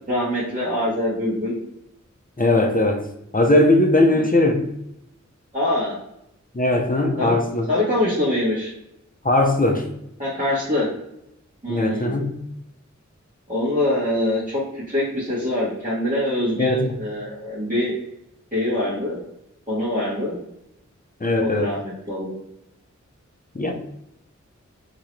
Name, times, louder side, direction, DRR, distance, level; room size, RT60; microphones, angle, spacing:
voice 1, 0.1-1.5 4.1-4.2 5.5-6.0 7.2-7.4 7.7-8.7 10.2-10.9 11.6-12.1 13.5-18.0 18.5-19.2 19.7-20.4 21.4-22.3, left 1 dB, 25° right, -10 dB, 1.3 m, -24 dB
voice 2, 2.4-3.1 3.3-4.6 6.5-7.7 9.2-9.9 11.7-12.4 16.6-16.9 21.2-21.7 23.5-23.7, left 2 dB, 30° left, 2 dB, 0.7 m, -19 dB
3.6 x 2.9 x 3.1 m, 0.82 s
wide cardioid pair, 45°, 30 cm